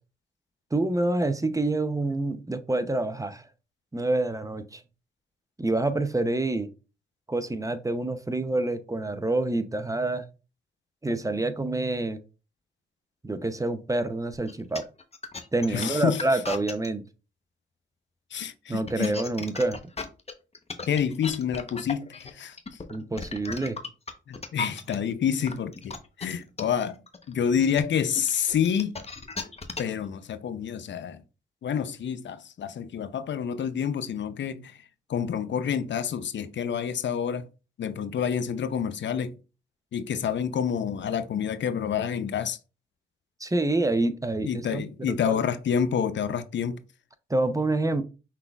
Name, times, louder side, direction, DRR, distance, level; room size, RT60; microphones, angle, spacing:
voice 1, 0.7-3.4 3.9-4.8 5.6-6.7 7.3-10.3 11.0-12.2 13.2-14.8 15.5-17.0 18.7-19.8 22.9-23.8 43.4-45.4 47.3-48.0, right 2 dB, 15° right, 0.7 m, -27 dB
sound 1, 14.3-16.9 18.7-24.9 25.4-30.0, left 3 dB, 30° left, 0.9 m, -36 dB
voice 2, 15.7-16.2 18.3-19.1 20.9-22.6 24.3-27.0 27.3-28.9 29.8-31.2 31.6-34.8 35.1-37.5 37.8-39.4 39.9-42.6 44.4-46.8, left 8 dB, 65° left, 0.6 m, -28 dB
5.6 x 3.8 x 2.4 m
supercardioid pair, 50°, 21 cm